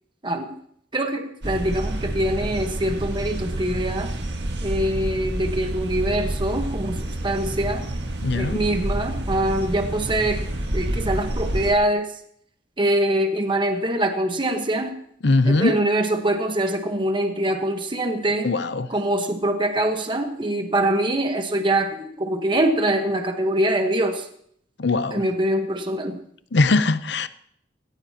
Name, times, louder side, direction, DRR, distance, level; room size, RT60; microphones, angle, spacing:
voice 1, 0.9-4.1 4.6-7.0 7.2-7.9 8.3-10.4 10.7-12.1 12.8-14.9 15.5-18.5 18.9-24.2 25.1-26.2, right 1 dB, 25° right, 5 dB, 1.2 m, -23 dB
sound 1, 1.4-11.7, right 1 dB, 65° right, 1.7 m, -28 dB
voice 2, 8.2-8.6 15.2-15.8 18.4-18.9 24.8-25.2 26.5-27.3, left 3 dB, 65° left, 13 dB, 0.7 m, -21 dB
18.0 x 17.5 x 2.9 m, 0.67 s
head